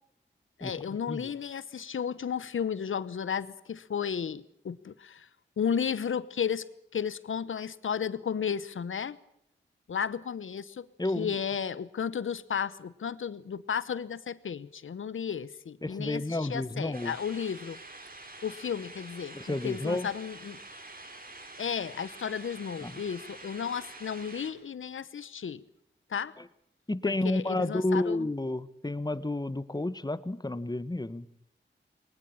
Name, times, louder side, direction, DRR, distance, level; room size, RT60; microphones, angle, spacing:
voice 1, 0.6-5.3 5.6-6.6 6.9-9.2 9.9-10.9 11.2-17.8 18.4-20.6 21.6-25.6 26.1-26.3 27.0-28.3, left 7 dB, 85° left, 17 dB, 1.0 m, -33 dB
voice 2, 11.0-11.3 15.8-17.1 19.3-20.1 22.8-22.9 26.4-26.5 26.9-31.3, left 2 dB, 20° left, 15 dB, 1.3 m, -31 dB
sound 1, 16.9-24.5, right 2 dB, 45° right, 4.1 m, -47 dB
21.5 x 20.0 x 7.3 m, 0.77 s
cardioid pair, 50°, 20 cm